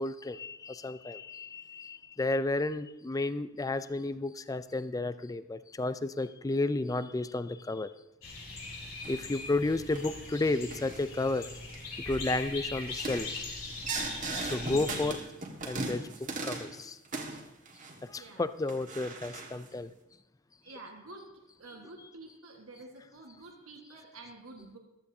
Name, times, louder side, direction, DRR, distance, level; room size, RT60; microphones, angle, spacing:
voice 1, 0.0-7.9 9.1-11.5 12.1-13.3 14.4-15.2 15.7-16.1 16.4-17.0 18.1-19.9, left 2 dB, 15° left, 14 dB, 0.4 m, -32 dB
sound 1, 8.2-15.1, left 3 dB, 75° left, 3.9 m, -41 dB
sound 2, 9.0-9.5 9.9-10.2 10.7-11.1 11.5-11.8 12.1-12.4 12.9-16.8 17.0-18.2 18.7-19.7, right 3 dB, 40° right, 1.6 m, -38 dB
voice 2, 18.1-18.4 20.6-21.3 21.6-24.8, right 2 dB, 90° right, 1 dB, 1.5 m, -49 dB
15.0 x 13.0 x 2.7 m, 0.94 s
head